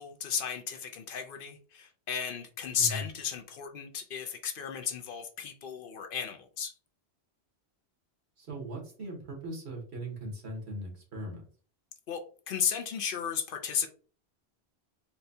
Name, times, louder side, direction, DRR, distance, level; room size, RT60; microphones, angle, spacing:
voice 1, 0.0-6.7 12.1-13.9, left 7 dB, 65° left, 5 dB, 0.7 m, -34 dB
voice 2, 8.4-11.5, right 1 dB, 90° right, 0 dB, 1.5 m, -39 dB
4.2 x 2.2 x 2.6 m, 0.41 s
omnidirectional pair, 1.1 m